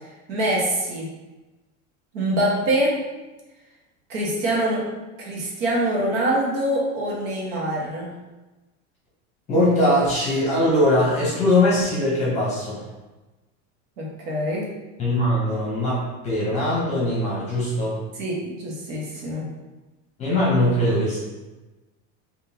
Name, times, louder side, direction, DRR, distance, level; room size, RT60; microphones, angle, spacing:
voice 1, 0.3-1.1 2.1-2.9 4.1-4.9 5.2-8.1 14.0-14.7 18.2-19.5, right 1 dB, 75° right, -3 dB, 1.2 m, -24 dB
voice 2, 9.5-12.8 15.0-18.0 20.2-21.2, left 1 dB, 20° left, -6 dB, 0.7 m, -21 dB
3.5 x 2.5 x 2.8 m, 1.1 s
supercardioid pair, 170°, 38 cm